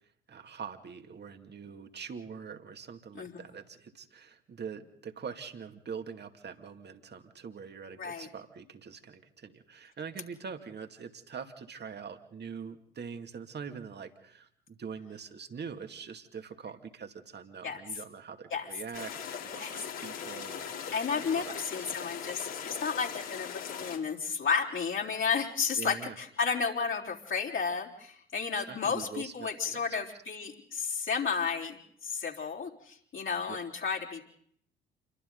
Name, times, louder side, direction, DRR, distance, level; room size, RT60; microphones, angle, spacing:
voice 1, 0.3-22.0 25.8-26.2 28.7-29.9 33.5-33.6, right 6 dB, 35° right, 6 dB, 2.4 m, -44 dB
sound 1, 18.9-24.0, left 7 dB, 60° left, 4.1 m, -40 dB
voice 2, 20.9-34.3, left 5 dB, 45° left, -4 dB, 3.9 m, -32 dB
29.0 x 23.5 x 4.0 m, 0.65 s
figure-of-eight pair, 50°, 30 cm